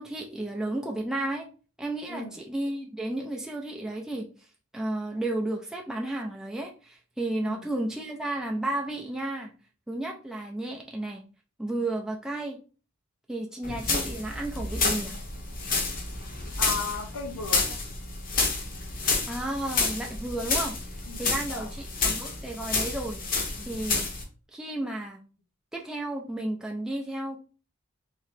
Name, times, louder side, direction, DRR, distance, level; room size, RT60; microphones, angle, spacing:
voice 1, 0.0-1.5 1.8-4.5 4.7-9.5 9.9-11.2 11.6-12.6 13.3-15.2 19.3-23.2 23.7-24.1 24.5-25.2 25.7-27.4, right 1 dB, 5° right, -1 dB, 0.4 m, -33 dB
sound 1, 13.6-24.2, left 4 dB, 40° left, 0.9 m, -29 dB
voice 2, 16.6-17.8 21.1-21.7, left 3 dB, 85° left, 4 dB, 0.9 m, -36 dB
3.7 x 3.2 x 3.2 m, 0.36 s
head